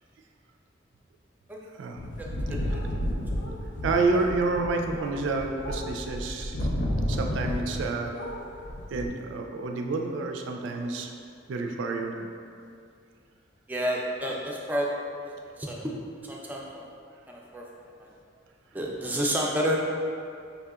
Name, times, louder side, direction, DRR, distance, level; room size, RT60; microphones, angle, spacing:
sound 1, 2.0-9.1, equal, 75° left, 0.5 m, -31 dB
voice 1, 2.2-2.8 13.7-14.9 15.6-15.9 16.2-16.9 17.3-17.6 18.0-18.1 18.7-19.8, equal, 10° right, -3 dB, 0.4 m, -30 dB
voice 2, 3.8-6.7 7.1-8.1 8.9-11.1 11.5-12.3, right 3 dB, 85° right, 3 dB, 0.3 m, -29 dB
5.4 x 2.8 x 2.3 m, 2.4 s
head